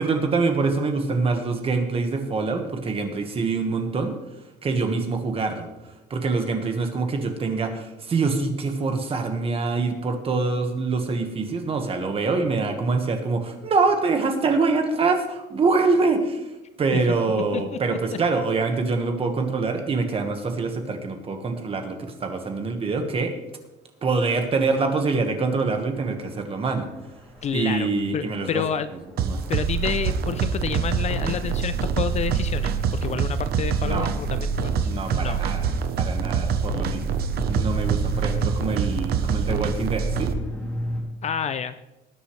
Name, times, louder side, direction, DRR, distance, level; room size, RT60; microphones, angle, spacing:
voice 1, 0.0-4.2 4.6-5.7 6.1-16.5 16.8-23.3 24.0-26.9 27.5-28.6 29.2-29.4 33.8-34.1 34.8-35.7 36.0-37.2 37.5-40.3, right 4 dB, 30° right, 5 dB, 1.5 m, -25 dB
sound 1, 25.7-41.0, right 1 dB, 5° left, 2.8 m, -37 dB
voice 2, 27.4-27.9 28.1-28.9 29.5-35.4 36.7-36.9 41.2-41.8, left 8 dB, 35° left, 12 dB, 0.4 m, -29 dB
sound 2, 29.2-40.3, right 6 dB, 50° right, 0.9 m, -25 dB
19.5 x 9.5 x 3.3 m, 1.0 s
cardioid pair, 170°, 20 cm